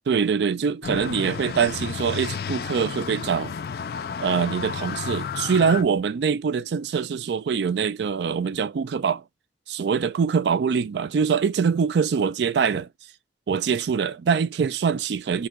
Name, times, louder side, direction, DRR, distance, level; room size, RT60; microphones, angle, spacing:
voice 1, 0.1-3.5 4.2-9.2 9.7-12.9 13.5-15.5, right 6 dB, 75° right, 0.4 m, -24 dB
sound 1, 0.8-5.8, left 6 dB, 55° left, 0.3 m, -32 dB
4.4 x 2.9 x 2.4 m
head